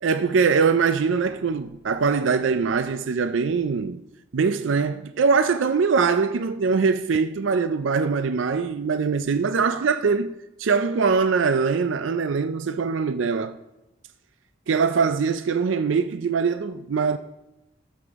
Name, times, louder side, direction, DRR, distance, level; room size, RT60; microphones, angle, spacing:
voice 1, 0.0-4.0 4.3-13.6 14.7-17.2, right 5 dB, 85° right, 0.4 m, -22 dB
18.5 x 6.9 x 3.6 m
head